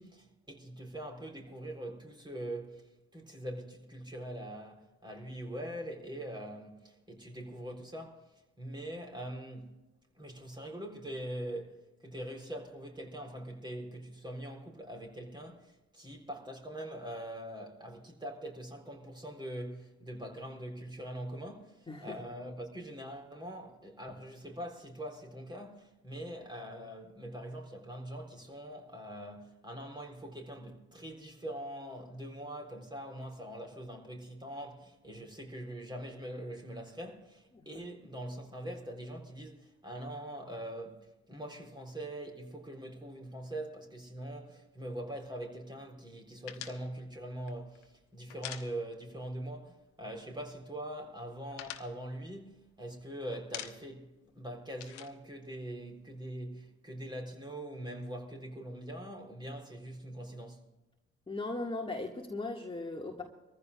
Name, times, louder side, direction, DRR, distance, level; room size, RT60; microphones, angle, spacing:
voice 1, 0.0-8.2 8.6-9.7 10.2-11.8 12.0-54.1 54.3-60.6, right 1 dB, 15° right, 3.8 m, -43 dB
voice 2, 21.9-22.2 37.5-37.7 61.3-63.2, left 2 dB, 15° left, 2.0 m, -38 dB
sound 1, 46.5-49.3 49.5-49.7 50.0-50.7 51.0-53.0 53.3-54.1 54.3-56.2, left 12 dB, 80° left, 1.1 m, -46 dB
25.5 x 15.0 x 2.5 m
hypercardioid pair, 50°, 34 cm